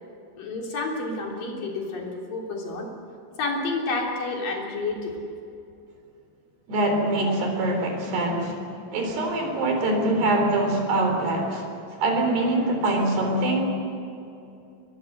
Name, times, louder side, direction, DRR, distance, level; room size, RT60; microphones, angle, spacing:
voice 1, 0.4-2.9 3.4-5.2 7.3-7.4, left 3 dB, 60° left, 0 dB, 4.8 m, -30 dB
voice 2, 6.7-8.6 8.9-11.7 12.0-13.7, right 2 dB, 85° right, 3 dB, 5.8 m, -24 dB
22.5 x 22.0 x 8.0 m, 2.7 s
omnidirectional pair, 4.6 m